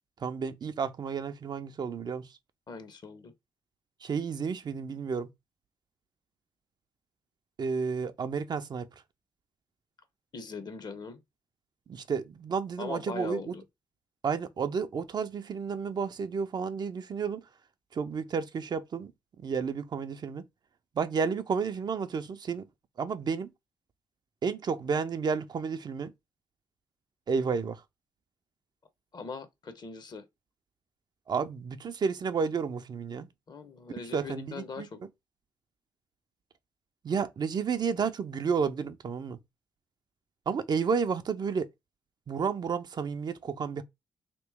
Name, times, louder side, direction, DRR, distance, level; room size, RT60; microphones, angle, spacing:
voice 1, 0.2-2.2 4.0-5.3 7.6-8.9 11.9-13.5 14.2-17.4 17.9-19.1 19.4-20.4 21.0-22.7 23.0-23.5 24.4-26.1 27.3-27.8 31.3-33.3 34.1-34.9 37.0-39.4 40.5-41.7 42.3-43.8, right 6 dB, 45° right, 0.5 m, -31 dB
voice 2, 2.7-3.3 10.3-11.2 12.8-13.6 29.1-30.3 33.5-35.0, left 4 dB, 45° left, 0.8 m, -41 dB
3.0 x 2.9 x 3.4 m
hypercardioid pair, 45°, 10 cm